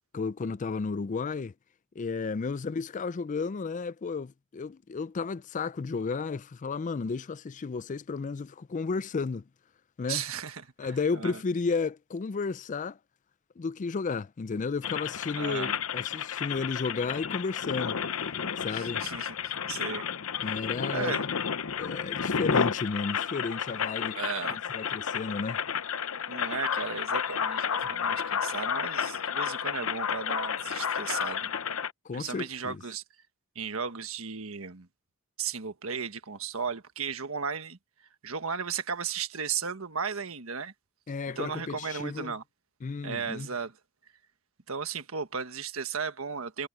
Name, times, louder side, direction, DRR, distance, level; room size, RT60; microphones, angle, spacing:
voice 1, 0.1-1.5 2.0-9.4 10.0-10.2 10.8-13.0 13.6-18.0 18.6-19.0 20.4-21.1 21.7-24.2 24.5-25.6 27.8-27.9 32.1-32.8 41.1-42.3 42.8-43.5, left 4 dB, 35° left, 0.4 m, -33 dB
voice 2, 10.1-11.4 15.4-15.8 18.7-19.3 19.7-20.0 20.9-21.3 24.1-24.6 26.3-31.5 32.1-33.0 33.5-34.9 35.4-37.8 38.2-40.7 41.4-42.4 43.0-43.7 44.7-46.7, right 6 dB, 85° right, 1.5 m, -35 dB
sound 1, 14.8-31.9, left 7 dB, 85° left, 0.8 m, -31 dB
head